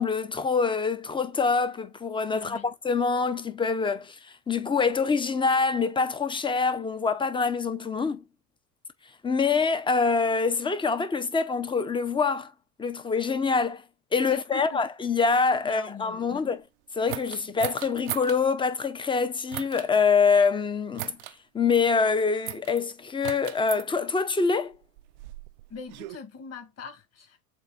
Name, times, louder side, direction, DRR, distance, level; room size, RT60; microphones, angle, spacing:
voice 1, 0.0-8.2 9.2-12.5 12.8-13.8 14.1-16.6 16.9-21.2 21.5-24.7, left 5 dB, 10° left, 0.7 m, -25 dB
voice 2, 2.3-2.7 14.3-14.8 15.6-16.5 25.7-27.4, left 5 dB, 35° left, 2.2 m, -42 dB
sound 1, 17.1-18.4 19.5-19.9 21.0-21.4 22.5-22.8 23.2-23.8 24.7-26.2, right 19 dB, 65° right, 0.5 m, -37 dB
7.6 x 2.7 x 2.5 m
hypercardioid pair, 105°, 46 cm